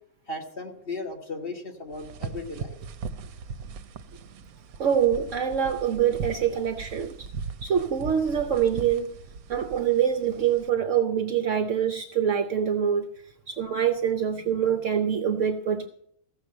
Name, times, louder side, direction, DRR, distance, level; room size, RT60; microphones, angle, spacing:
voice 1, 0.3-2.8, left 2 dB, 40° left, 1 dB, 2.1 m, -36 dB
sound 1, 1.9-10.7, right 5 dB, 85° right, 1.1 m, -39 dB
voice 2, 4.8-7.3 7.6-9.1 9.5-13.1 13.5-15.9, right 8 dB, 65° right, 7 dB, 1.1 m, -25 dB
15.5 x 6.7 x 7.7 m, 0.70 s
omnidirectional pair, 1.5 m